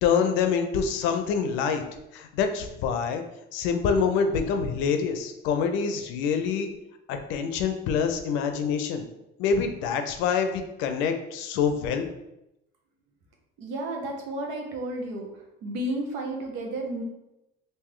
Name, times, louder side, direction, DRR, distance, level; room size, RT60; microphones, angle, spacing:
voice 1, 0.0-1.8 2.1-3.2 3.5-6.7 7.1-9.1 9.4-12.1, left 6 dB, 75° left, 6 dB, 0.5 m, -26 dB
voice 2, 13.6-15.3 15.6-17.0, right 1 dB, 70° right, 1 dB, 0.9 m, -32 dB
3.2 x 2.6 x 3.7 m, 0.89 s
cardioid pair, 165°, 20 cm